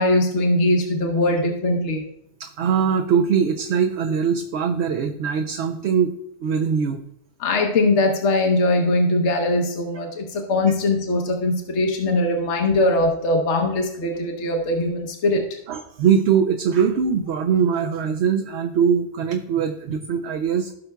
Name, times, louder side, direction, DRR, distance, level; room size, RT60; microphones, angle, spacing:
voice 1, 0.0-2.0 7.4-15.6, left 2 dB, 65° left, 2 dB, 1.2 m, -21 dB
voice 2, 2.4-6.1 6.4-7.0 15.7-20.7, right 7 dB, 65° right, 6 dB, 0.8 m, -21 dB
17.0 x 5.8 x 2.3 m, 0.79 s
omnidirectional pair, 1.3 m